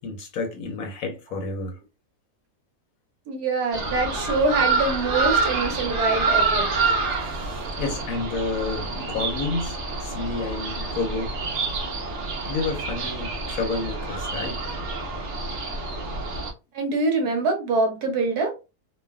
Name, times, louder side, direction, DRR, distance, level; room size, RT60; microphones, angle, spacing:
voice 1, 0.0-1.8 7.2-11.3 12.5-14.6, left 3 dB, 70° left, 1.0 m, -30 dB
voice 2, 3.3-6.8 16.7-18.5, right 3 dB, 75° right, 1.3 m, -24 dB
sound 1, 3.7-16.5, right 3 dB, 60° right, 0.9 m, -27 dB
3.2 x 2.2 x 2.2 m
omnidirectional pair, 1.7 m